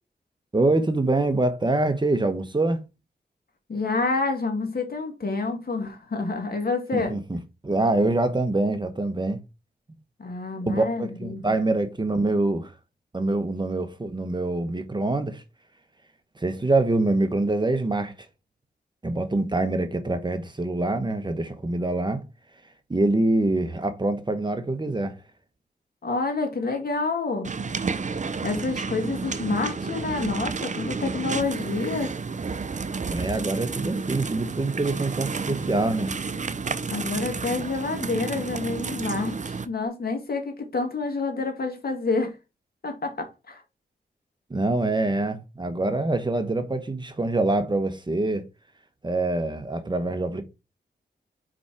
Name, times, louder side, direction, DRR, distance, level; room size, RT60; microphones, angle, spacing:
voice 1, 0.5-2.8 6.9-9.4 10.6-12.7 13.1-15.4 16.4-18.3 19.0-22.2 22.9-25.2 33.1-36.1 44.5-48.4 49.0-50.4, right 2 dB, 25° right, 1.1 m, -25 dB
voice 2, 3.7-7.2 10.2-11.6 26.0-27.5 28.4-32.1 36.9-42.4 42.8-43.6, left 3 dB, 60° left, 2.1 m, -28 dB
sound 1, 27.4-39.7, right 4 dB, 45° right, 0.7 m, -31 dB
5.1 x 4.9 x 4.6 m
cardioid pair, 65°, 17 cm